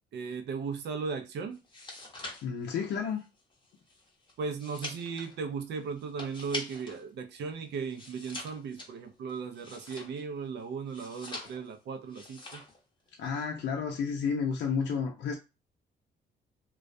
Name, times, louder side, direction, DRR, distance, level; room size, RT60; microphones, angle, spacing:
voice 1, 0.1-1.6 4.4-12.6, right 5 dB, 70° right, 0.5 m, -37 dB
sound 1, 1.5-7.0 7.4-10.4 10.9-11.8 12.1-12.8 13.1-13.4, left 2 dB, 25° left, 0.7 m, -44 dB
voice 2, 2.4-3.2 13.2-15.4, left 6 dB, 70° left, 0.5 m, -31 dB
2.3 x 2.2 x 2.5 m
cardioid pair, 120°, 19 cm